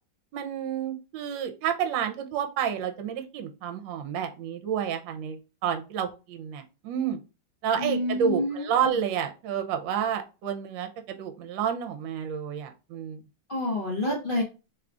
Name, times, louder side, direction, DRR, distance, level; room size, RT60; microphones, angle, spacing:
voice 1, 0.3-7.2 7.6-13.2 14.1-14.2, right 8 dB, 75° right, 6 dB, 1.3 m, -30 dB
voice 2, 7.8-8.9 13.5-14.4, left 1 dB, 55° left, -3 dB, 0.6 m, -28 dB
3.6 x 2.3 x 3.7 m, 0.31 s
omnidirectional pair, 2.2 m